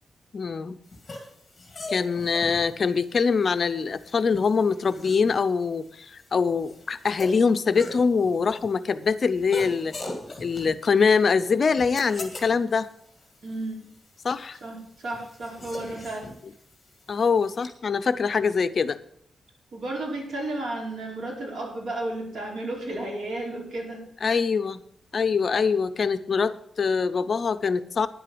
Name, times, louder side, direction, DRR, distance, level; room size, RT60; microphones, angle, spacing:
voice 1, 0.3-0.8 1.9-9.9 10.4-12.9 14.2-14.6 17.1-19.0 24.2-24.8 25.1-28.1, left 5 dB, 40° left, 12 dB, 0.6 m, -23 dB
sound 1, 0.9-17.7, left 2 dB, 20° left, 2.4 m, -42 dB
voice 2, 13.4-13.9 14.6-16.3 19.7-24.0, right 2 dB, 70° right, -2 dB, 4.9 m, -33 dB
9.9 x 8.0 x 7.7 m, 0.66 s
wide cardioid pair, 160°, 0 cm